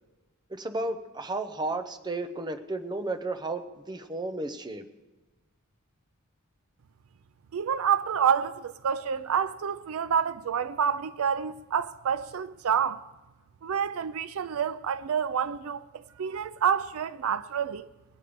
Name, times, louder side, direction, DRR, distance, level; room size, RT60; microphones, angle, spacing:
voice 1, 0.5-4.8, right 2 dB, 20° right, 0.7 m, -33 dB
voice 2, 7.5-13.0 13.6-17.9, right 7 dB, 70° right, 0.4 m, -28 dB
20.5 x 8.5 x 5.0 m
head